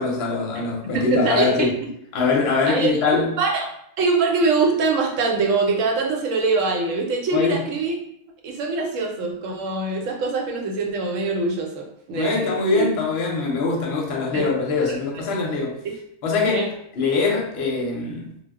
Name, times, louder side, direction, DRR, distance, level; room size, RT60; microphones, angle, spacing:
voice 1, 0.0-1.7 2.1-3.3 7.3-7.6 12.1-15.8 16.2-16.7 17.0-18.3, left 4 dB, 60° left, -1 dB, 0.8 m, -22 dB
voice 2, 0.9-1.7 2.6-3.6 4.0-7.9 8.4-12.9 14.3-14.5 16.5-16.7, right 3 dB, 75° right, 1 dB, 0.9 m, -23 dB
2.2 x 2.0 x 3.4 m, 0.72 s
omnidirectional pair, 1.3 m